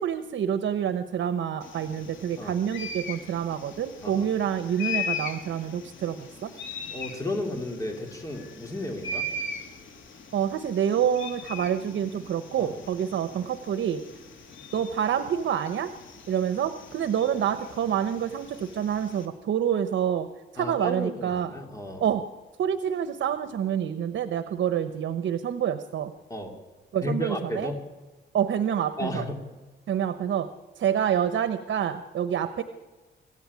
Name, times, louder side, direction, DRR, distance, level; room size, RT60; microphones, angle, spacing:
voice 1, 0.0-6.5 10.3-14.0 14.7-15.9 16.3-20.3 20.5-21.5 22.0-22.2 22.6-26.1 26.9-27.7 28.3-29.2 29.9-30.5 30.8-32.6, right 9 dB, 80° right, 10 dB, 1.0 m, -27 dB
sound 1, 1.6-19.3, left 4 dB, 80° left, 3.2 m, -39 dB
voice 2, 6.9-9.2 12.6-12.8 20.6-22.1 26.3-26.5 27.0-27.8 29.0-29.4, left 1 dB, 15° left, 3 dB, 2.9 m, -33 dB
25.0 x 14.5 x 9.7 m, 1.3 s
wide cardioid pair, 155°, 20 cm